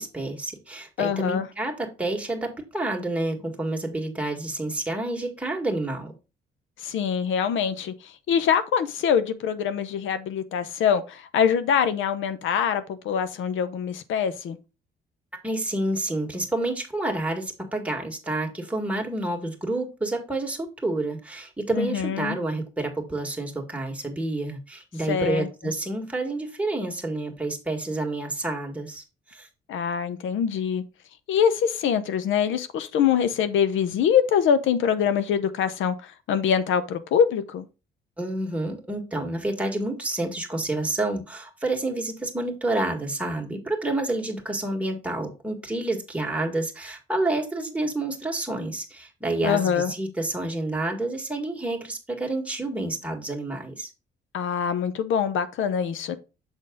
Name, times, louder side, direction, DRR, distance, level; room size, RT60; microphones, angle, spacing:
voice 1, 0.0-6.2 15.4-29.0 29.3-29.5 38.2-53.9, right 2 dB, 5° right, 1.9 m, -29 dB
voice 2, 1.0-1.5 6.8-14.6 21.7-22.4 25.1-25.5 29.7-30.8 31.3-37.7 49.4-49.9 54.3-56.2, left 8 dB, 75° left, 0.8 m, -24 dB
7.1 x 4.0 x 3.7 m
cardioid pair, 90°, 20 cm